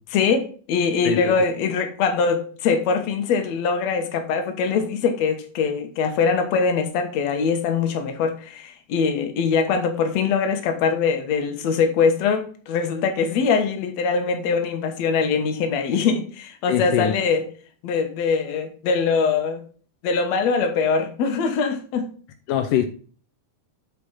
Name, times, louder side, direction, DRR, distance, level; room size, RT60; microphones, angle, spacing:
voice 1, 0.1-17.4 17.8-19.6 20.0-22.0, left 5 dB, 60° left, 2.2 m, -22 dB
voice 2, 16.7-17.1 22.5-22.9, left 10 dB, 80° left, 2.3 m, -22 dB
8.0 x 5.2 x 5.6 m
omnidirectional pair, 3.8 m